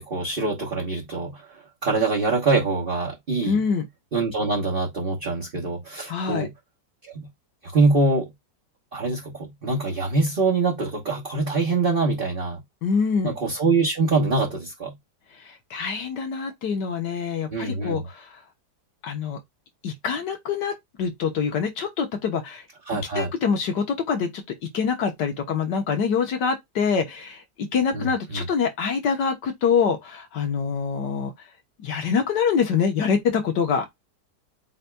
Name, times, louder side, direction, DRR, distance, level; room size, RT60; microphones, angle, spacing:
voice 1, 0.0-3.6 4.1-6.5 7.1-7.2 7.6-8.3 8.9-12.6 13.2-14.9 17.5-18.1 22.9-23.3 27.9-28.5, right 3 dB, 35° right, 1.2 m, -24 dB
voice 2, 3.4-3.9 6.1-6.5 12.8-13.3 15.5-18.4 19.0-19.4 19.8-22.6 23.2-31.3 31.8-33.9, left 6 dB, 75° left, 1.7 m, -25 dB
8.1 x 2.8 x 2.3 m
omnidirectional pair, 1.9 m